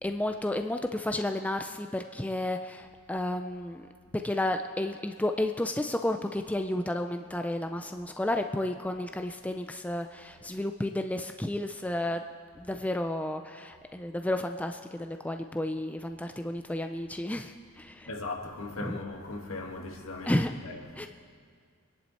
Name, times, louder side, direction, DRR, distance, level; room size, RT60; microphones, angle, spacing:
voice 1, 0.0-12.2 12.6-18.1 18.8-19.0 20.2-20.5 21.0-21.1, left 1 dB, 5° left, 0.3 m, -32 dB
voice 2, 18.1-21.1, left 2 dB, 75° left, 1.8 m, -38 dB
24.5 x 10.5 x 4.2 m
head